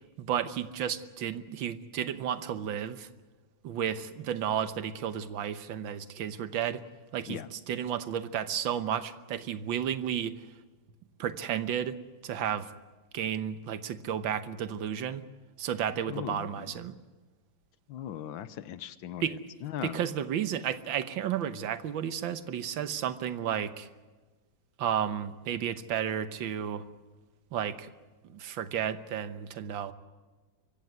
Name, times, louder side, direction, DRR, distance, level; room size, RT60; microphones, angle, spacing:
voice 1, 0.2-3.1 3.6-6.8 7.1-10.5 11.2-12.0 12.2-12.7 13.1-15.2 15.6-17.0 19.2-19.4 19.8-23.9 24.8-26.9 27.5-27.9 28.2-29.9, right 9 dB, 80° right, 12 dB, 1.8 m, -32 dB
voice 2, 16.1-16.7 17.9-20.0, left 10 dB, 85° left, 15 dB, 1.7 m, -39 dB
24.0 x 15.5 x 9.5 m, 1.3 s
omnidirectional pair, 2.1 m